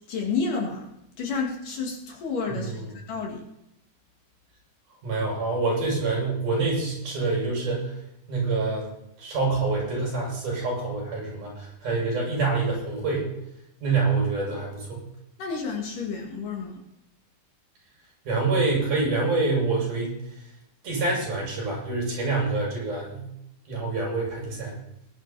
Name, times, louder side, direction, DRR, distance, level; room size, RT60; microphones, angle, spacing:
voice 1, 0.1-3.4 15.4-16.8, left 4 dB, 60° left, 0 dB, 3.7 m, -30 dB
voice 2, 5.0-7.9 8.3-8.9 9.2-13.3 13.8-15.0 18.2-20.1 20.8-23.3 23.7-24.8, right 3 dB, 55° right, -3 dB, 8.4 m, -26 dB
20.5 x 11.0 x 4.2 m, 0.83 s
omnidirectional pair, 4.3 m